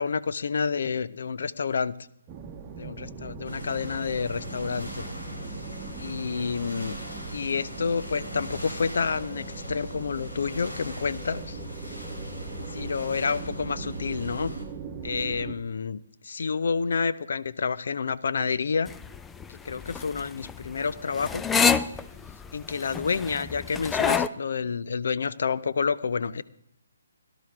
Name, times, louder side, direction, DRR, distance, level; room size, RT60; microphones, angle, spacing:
voice 1, 0.0-1.9 2.7-5.1 6.0-7.0 7.3-11.6 12.7-14.5 15.0-18.9 19.5-21.4 22.5-26.4, left 5 dB, 55° left, 16 dB, 0.6 m, -29 dB
sound 1, 2.3-15.6, right 6 dB, 20° right, 1.1 m, -40 dB
sound 2, 3.4-14.6, left 1 dB, 75° left, 4.0 m, -39 dB
sound 3, 18.9-24.3, left 6 dB, 10° left, 0.4 m, -27 dB
18.0 x 12.0 x 3.6 m, 0.73 s
figure-of-eight pair, 135°, 0 cm